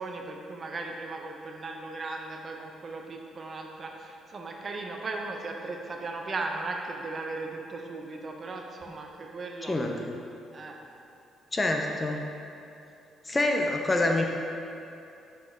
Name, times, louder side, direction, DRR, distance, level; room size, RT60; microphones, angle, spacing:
voice 1, 0.0-9.8 10.5-10.8, right 3 dB, 45° right, 2 dB, 0.8 m, -37 dB
voice 2, 9.6-10.1 11.5-12.3 13.2-14.2, left 2 dB, 25° left, 2 dB, 0.8 m, -26 dB
6.9 x 5.2 x 3.7 m, 2.7 s
supercardioid pair, 60°, 0 cm